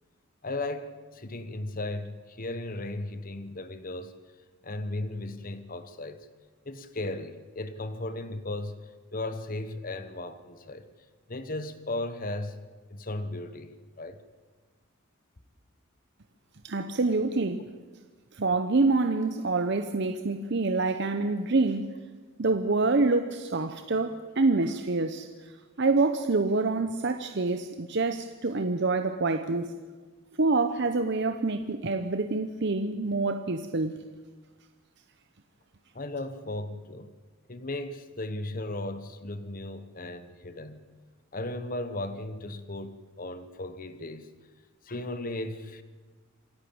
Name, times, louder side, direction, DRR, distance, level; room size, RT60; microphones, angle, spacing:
voice 1, 0.4-4.1 4.6-6.3 6.6-10.9 11.3-12.6 12.9-14.2 35.9-37.1 37.5-40.9 41.3-44.3 44.8-45.8, left 2 dB, 40° left, 1.1 m, -36 dB
voice 2, 16.6-17.7 18.3-21.9 22.4-25.3 25.8-29.7 30.4-34.0, right 3 dB, 55° right, 0.8 m, -26 dB
26.5 x 11.5 x 8.7 m
head